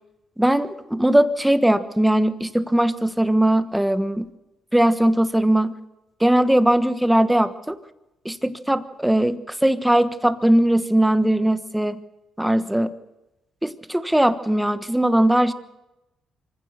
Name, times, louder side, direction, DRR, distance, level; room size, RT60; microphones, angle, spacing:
voice 1, 0.4-4.2 4.7-5.7 6.2-7.8 8.2-12.0 12.4-12.9 13.6-15.5, right 1 dB, 5° right, 11 dB, 1.3 m, -19 dB
25.0 x 15.5 x 6.7 m, 0.97 s
cardioid pair, 90°, 0 cm